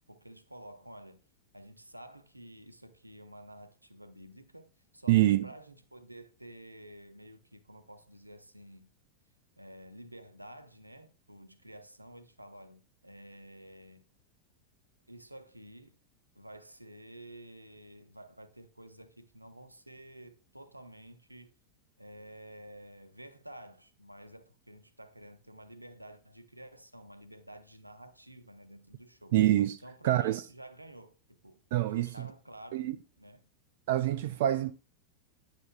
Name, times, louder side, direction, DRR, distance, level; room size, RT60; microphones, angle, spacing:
voice 1, 0.1-1.3 1.5-8.9 9.6-14.1 15.1-16.0 16.3-21.5 22.0-29.4 29.8-32.9 33.2-33.5, right 1 dB, 85° right, 0.7 m, -51 dB
voice 2, 5.1-5.5 29.3-30.4 31.7-32.3 32.7-33.0 33.9-34.7, right 14 dB, 55° right, 0.3 m, -26 dB
9.8 x 6.5 x 2.2 m
figure-of-eight pair, 90°, 0 cm